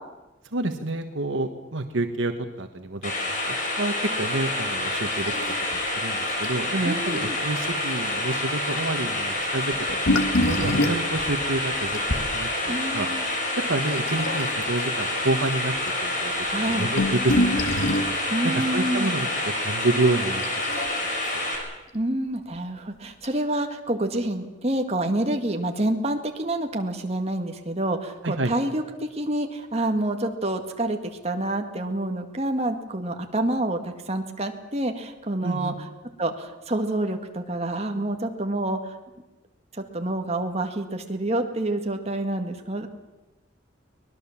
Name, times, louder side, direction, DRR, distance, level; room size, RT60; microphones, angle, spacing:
voice 1, 0.5-5.3 5.7-9.7 10.1-13.4 13.7-15.7 16.0-17.4 17.6-19.3 19.6-20.4 20.8-21.4 28.2-28.5 35.4-35.7, right 2 dB, 80° right, 6 dB, 1.4 m, -29 dB
sound 1, 3.0-21.6, left 1 dB, 40° left, 5.6 m, -28 dB
sound 2, 5.2-5.8 6.0-6.1 6.4-6.6 7.2-7.3 9.7-12.3 14.0-14.7 15.5-15.6 15.8-15.9 16.5-18.2 20.4-21.3 22.5-22.6 23.2-23.3, left 1 dB, 90° left, 1.7 m, -26 dB
voice 2, 6.8-7.4 12.7-13.2 16.4-16.9 18.3-19.1 21.9-31.0 31.2-35.7 36.2-38.9 39.7-42.9, right 1 dB, 35° right, 4 dB, 2.0 m, -27 dB
23.5 x 20.0 x 7.3 m, 1.1 s
head